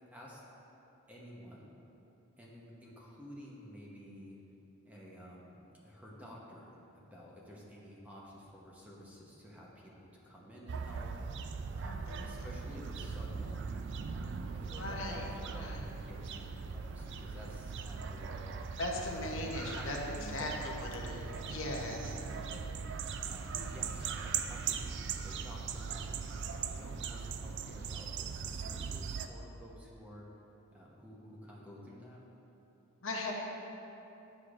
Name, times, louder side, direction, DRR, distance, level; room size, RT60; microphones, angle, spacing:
voice 1, 0.1-0.5 1.1-1.7 2.4-4.4 4.8-11.1 11.7-13.8 14.1-18.6 19.3-20.7 21.0-21.5 21.9-30.3 30.7-32.2, equal, 5° right, -5 dB, 0.9 m, -51 dB
sound 1, 10.7-29.3, right 5 dB, 55° right, 0.3 m, -40 dB
voice 2, 11.8-12.4 14.7-15.2 15.6-15.8 18.8-20.0 20.3-22.1 23.5-24.0 33.0-33.4, left 2 dB, 65° left, -1 dB, 0.8 m, -39 dB
sound 2, 12.8-25.8, right 1 dB, 35° left, 1.1 m, -64 dB
9.9 x 6.6 x 2.5 m, 2.9 s
head